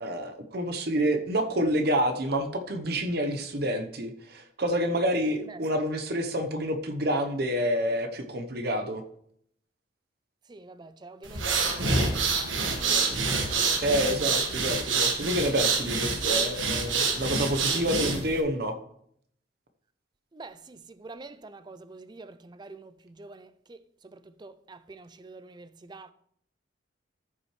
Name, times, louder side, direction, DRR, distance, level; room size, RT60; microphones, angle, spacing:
voice 1, 0.0-9.0 13.8-18.8, equal, 55° right, 0.9 m, -28 dB
voice 2, 10.5-11.6 11.9-12.5 12.8-13.0 13.7-13.8 20.3-22.9 23.2-23.5 24.4-26.1, right 3 dB, 20° right, 0.4 m, -46 dB
sound 1, 11.2-18.4, right 4 dB, 80° right, 1.5 m, -27 dB
14.5 x 6.0 x 3.2 m
head